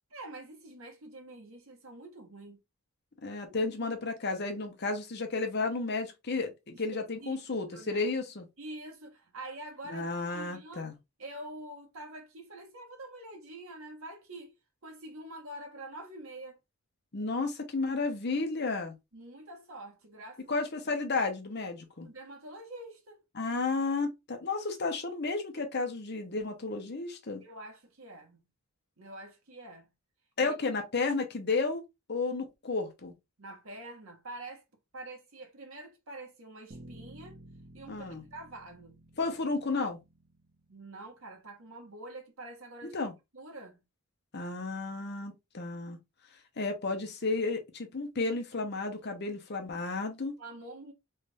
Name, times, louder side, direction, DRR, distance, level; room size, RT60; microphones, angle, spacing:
voice 1, 0.1-2.6 6.7-8.0 8.6-10.9 11.2-14.5 14.8-16.6 19.1-20.6 22.0-23.2 27.4-28.4 29.0-29.9 30.4-30.5 33.4-34.6 34.9-37.4 37.7-39.0 40.7-43.0 43.3-43.8 50.4-50.9, right 1 dB, 70° right, 1.3 m, -46 dB
voice 2, 3.2-8.5 9.9-10.9 17.1-18.9 20.5-22.1 23.3-27.4 30.4-31.8 32.1-33.1 37.9-38.2 39.2-40.0 42.8-43.1 44.3-46.0 46.6-50.4, left 3 dB, 50° left, 0.8 m, -32 dB
sound 1, 36.7-41.1, right 1 dB, 45° right, 1.1 m, -53 dB
3.3 x 2.6 x 3.3 m
head